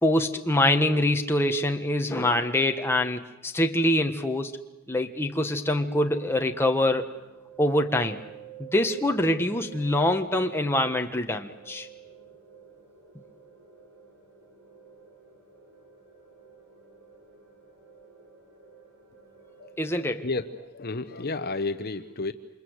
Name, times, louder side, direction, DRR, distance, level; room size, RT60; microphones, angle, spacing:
voice 1, 0.0-4.5 4.9-7.1 7.6-8.2 8.6-11.9 19.8-20.3, left 1 dB, 10° left, 4 dB, 1.4 m, -24 dB
sound 1, 6.9-20.7, right 8 dB, 85° right, 7.9 m, -51 dB
voice 2, 20.7-22.3, left 3 dB, 45° left, 9 dB, 0.9 m, -31 dB
28.5 x 26.5 x 8.0 m, 0.99 s
head